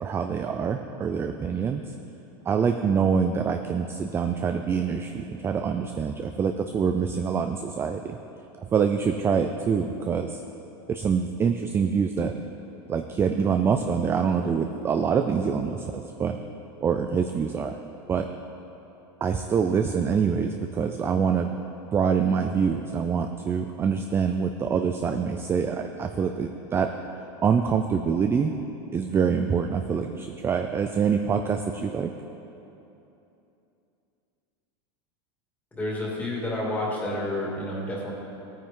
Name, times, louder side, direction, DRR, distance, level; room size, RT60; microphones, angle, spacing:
voice 1, 0.0-1.8 2.5-8.2 8.6-10.4 10.9-12.4 12.9-16.4 16.8-17.8 18.1-18.3 19.2-21.6 21.9-26.9 27.4-28.5 28.9-32.1, right 6 dB, 15° right, 6 dB, 0.4 m, -25 dB
voice 2, 35.7-38.1, left 1 dB, 10° left, -4 dB, 2.5 m, -29 dB
15.5 x 9.2 x 3.7 m, 2.9 s
supercardioid pair, 140°, 14 cm